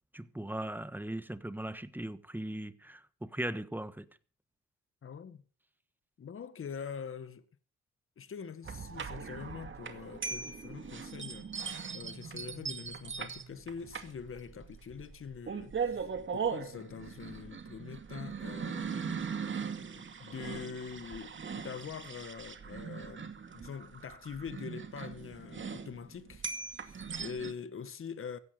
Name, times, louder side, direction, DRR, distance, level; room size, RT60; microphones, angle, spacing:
voice 1, 0.1-4.0, right 1 dB, 5° right, 1.3 m, -38 dB
voice 2, 5.0-5.4 6.2-7.4 8.2-19.3 19.9-26.5 26.8-28.4, left 6 dB, 45° left, 1.8 m, -44 dB
sound 1, 8.6-27.5, right 6 dB, 40° right, 2.3 m, -40 dB
16.5 x 13.0 x 5.2 m
cardioid pair, 90°, 30 cm